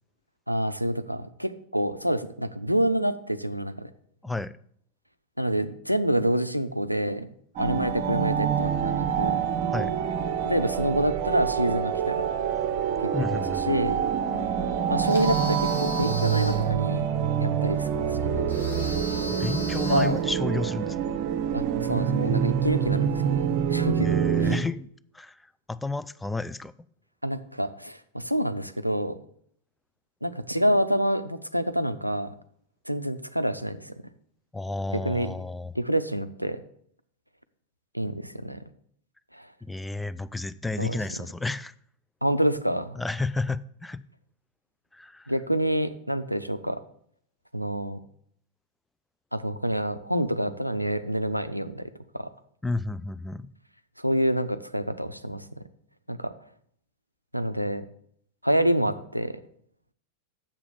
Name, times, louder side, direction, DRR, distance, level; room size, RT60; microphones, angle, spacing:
voice 1, 0.5-3.9 5.4-7.3 7.6-9.4 10.4-12.3 13.0-13.4 13.7-14.0 14.9-17.0 17.4-18.6 19.9-20.2 21.5-23.4 23.7-24.5 27.2-29.2 30.2-32.3 32.9-33.9 35.0-35.3 35.7-36.6 37.9-38.6 39.3-39.5 40.8-41.0 42.2-43.0 45.3-46.8 47.5-48.0 49.3-51.9 52.1-52.3 54.0-55.5 56.1-56.3 57.3-57.8 58.4-59.4, equal, 90° right, 0.5 m, -27 dB
voice 2, 4.2-4.6 9.7-9.9 13.1-14.0 19.4-21.0 24.0-24.9 25.1-25.4 25.7-26.7 34.5-35.7 39.6-41.7 43.0-44.0 44.9-45.3 52.6-53.5, left 2 dB, 5° left, 0.4 m, -31 dB
sound 1, 7.6-24.6, right 8 dB, 45° right, 0.8 m, -26 dB
sound 2, 15.0-16.7 18.5-20.2, left 1 dB, 85° left, 1.4 m, -35 dB
7.3 x 4.9 x 7.2 m
figure-of-eight pair, 90°, 0 cm